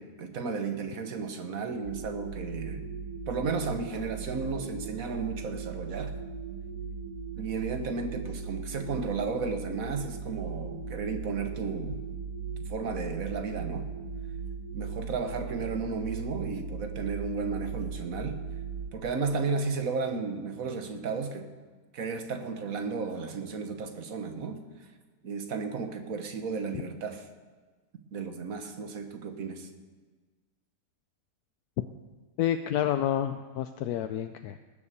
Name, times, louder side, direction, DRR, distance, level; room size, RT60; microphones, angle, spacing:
voice 1, 0.0-2.8 3.3-6.1 7.4-12.0 12.7-13.9 14.7-18.4 18.9-21.5 21.9-24.6 25.2-27.3 28.1-29.7, right 4 dB, 65° right, 6 dB, 1.6 m, -33 dB
sound 1, 1.8-18.9, right 5 dB, 20° right, 1.4 m, -38 dB
voice 2, 32.4-34.6, left 10 dB, 80° left, 8 dB, 1.1 m, -29 dB
19.0 x 7.3 x 6.7 m, 1.4 s
omnidirectional pair, 1.6 m